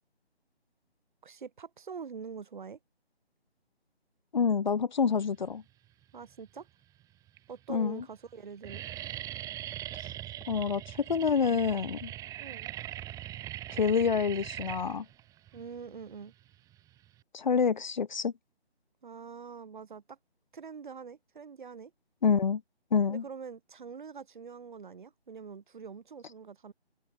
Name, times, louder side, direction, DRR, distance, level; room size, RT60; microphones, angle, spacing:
voice 1, 1.2-2.8 6.1-6.7 7.5-8.8 12.4-12.7 15.5-16.3 19.0-20.2 20.5-21.9 23.1-26.7, right 6 dB, 45° right, 5.8 m, -44 dB
voice 2, 4.3-5.6 7.7-8.0 10.5-12.1 13.7-15.0 17.3-18.3 22.2-22.6 22.9-23.2, left 6 dB, 45° left, 1.1 m, -27 dB
sound 1, 6.0-6.6 7.3-7.4 7.6-8.0 8.3-17.2, right 13 dB, 10° right, 6.3 m, -41 dB
figure-of-eight pair, 155°, 32 cm